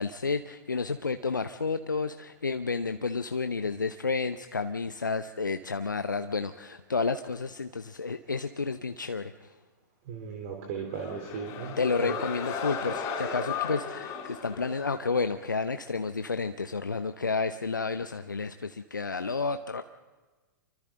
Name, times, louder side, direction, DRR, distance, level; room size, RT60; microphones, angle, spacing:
voice 1, 0.0-9.5 11.8-19.8, left 4 dB, 80° left, 9 dB, 0.8 m, -31 dB
voice 2, 10.1-11.7 12.0-12.1, right 6 dB, 45° right, 2 dB, 3.4 m, -37 dB
sound 1, 10.9-15.4, left 5 dB, 30° left, 4.5 m, -35 dB
29.0 x 24.5 x 3.8 m, 1.3 s
figure-of-eight pair, 100°, 10 cm